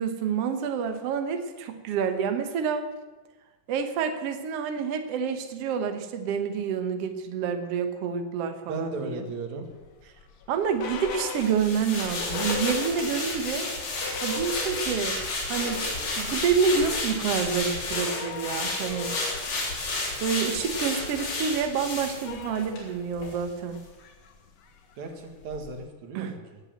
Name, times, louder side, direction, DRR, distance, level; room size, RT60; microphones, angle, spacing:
voice 1, 0.0-2.9 3.7-9.2 10.5-13.7 14.2-15.2 15.5-15.8 16.2-19.1 20.2-23.8 26.1-26.3, right 6 dB, 85° right, 7 dB, 1.3 m, -28 dB
voice 2, 8.7-9.7 25.0-26.6, right 3 dB, 55° right, 4 dB, 2.7 m, -36 dB
sound 1, 9.8-13.4 13.7-13.8 14.0-15.1 15.4-25.9, left 4 dB, 60° left, 1.8 m, -40 dB
sound 2, 11.3-22.9 23.2-23.4, left 2 dB, 80° left, 5.6 m, -32 dB
18.0 x 8.2 x 7.7 m, 1.2 s
omnidirectional pair, 4.5 m